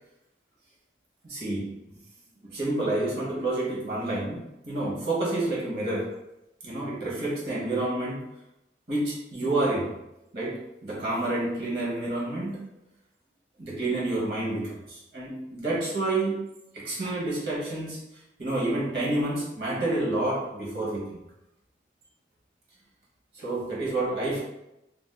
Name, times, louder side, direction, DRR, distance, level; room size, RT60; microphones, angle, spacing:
voice 1, 1.2-1.7 2.5-4.4 4.7-6.1 6.6-8.2 8.9-9.9 10.3-12.6 13.6-16.3 16.7-18.0 18.4-21.2 23.3-24.4, right 2 dB, 60° right, -5 dB, 1.1 m, -29 dB
2.6 x 2.3 x 3.4 m, 0.89 s
head